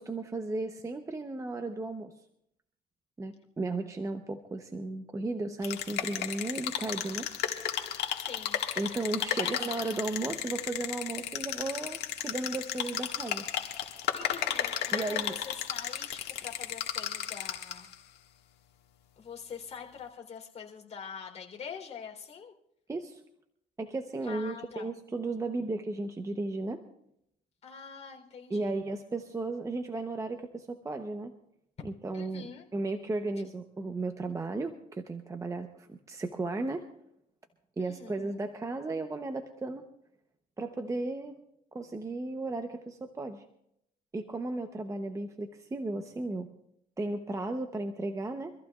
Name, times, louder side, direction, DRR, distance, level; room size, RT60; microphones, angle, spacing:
voice 1, 0.0-2.1 3.2-7.3 8.8-13.4 14.9-15.3 22.9-23.2 23.8-26.8 28.5-31.3 31.8-36.9 37.8-39.9 40.6-41.4 41.7-43.4 44.1-46.5 47.0-48.5, right 2 dB, 20° right, 5 dB, 0.9 m, -35 dB
sound 1, 5.6-17.9, left 10 dB, 75° left, 1.9 m, -34 dB
voice 2, 8.2-8.6 9.4-9.5 14.2-17.9 19.2-22.5 24.2-24.9 27.6-28.8 32.1-32.7 37.8-38.4, left 6 dB, 40° left, 0 dB, 3.7 m, -44 dB
25.5 x 14.5 x 2.4 m, 0.76 s
cardioid pair, 110°, 17 cm